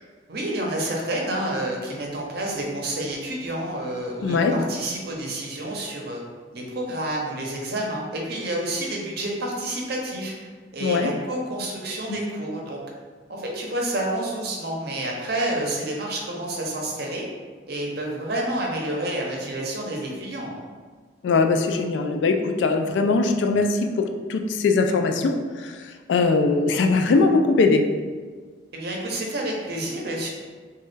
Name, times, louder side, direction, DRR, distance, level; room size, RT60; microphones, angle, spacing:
voice 1, 0.3-6.2 6.5-10.3 10.7-12.8 13.3-17.2 17.7-20.6 28.7-30.3, right 1 dB, 60° right, -1 dB, 0.6 m, -29 dB
voice 2, 4.2-4.6 10.8-11.1 12.1-12.2 21.2-27.9, left 3 dB, 75° left, 5 dB, 0.3 m, -21 dB
3.1 x 2.2 x 3.2 m, 1.5 s
head